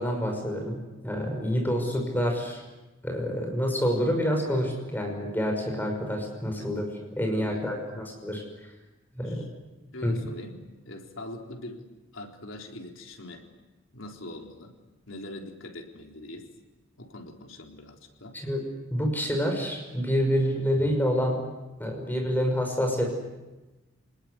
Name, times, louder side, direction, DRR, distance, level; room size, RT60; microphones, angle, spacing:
voice 1, 0.0-2.6 3.0-6.9 7.2-7.8 8.2-8.4 9.2-9.5 10.0-10.2 18.3-18.6 18.9-21.4 21.8-23.1, equal, 10° left, 2 dB, 5.9 m, -27 dB
voice 2, 7.4-8.1 9.2-9.5 9.9-11.9 12.1-13.5 13.9-14.7 15.1-16.5 17.0-18.4, left 1 dB, 75° left, 2 dB, 3.9 m, -42 dB
27.5 x 19.5 x 9.8 m, 1.1 s
head